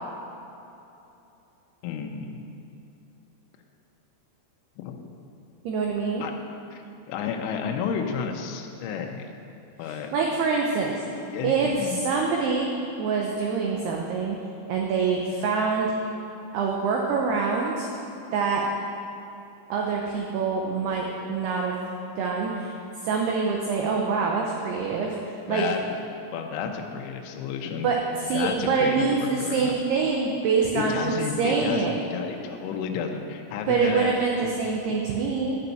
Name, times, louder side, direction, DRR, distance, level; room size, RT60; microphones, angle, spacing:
voice 1, 1.8-2.4 4.8-5.1 6.2-6.3 6.7-6.8 7.1-9.2 9.8-10.1 11.2-11.9 25.5-26.0 26.3-27.9 28.3-29.8 30.7-34.1 34.4-34.5, left 6 dB, 80° left, 3 dB, 3.1 m, -31 dB
voice 2, 5.6-6.2 9.8-10.9 11.4-12.7 13.0-14.4 14.7-15.9 16.5-17.9 18.3-18.6 19.7-21.8 22.2-22.7 23.0-25.6 27.8-32.0 33.7-35.6, right 5 dB, 85° right, -1 dB, 2.3 m, -25 dB
12.0 x 5.6 x 8.0 m, 2.9 s
omnidirectional pair, 5.8 m